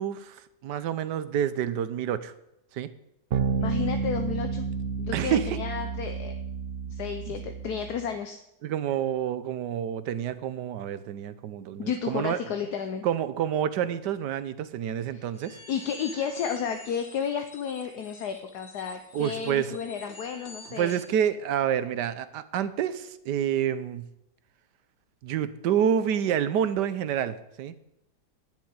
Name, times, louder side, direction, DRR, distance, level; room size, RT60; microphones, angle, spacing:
voice 1, 0.0-2.3 2.7-2.9 5.1-5.6 7.3-7.4 8.6-12.4 13.0-15.6 19.1-19.8 20.7-24.0 25.2-27.7, right 9 dB, 80° right, 13 dB, 1.4 m, -28 dB
sound 1, 3.3-8.1, right 5 dB, 50° right, 0.8 m, -30 dB
voice 2, 3.6-4.7 5.0-6.3 6.9-8.4 11.8-13.0 15.1-15.3 15.7-21.0, left 7 dB, 70° left, 7 dB, 1.4 m, -32 dB
sound 2, 15.3-21.1, left 2 dB, 40° left, 1.8 m, -47 dB
10.5 x 7.4 x 9.5 m, 0.82 s
omnidirectional pair, 1.8 m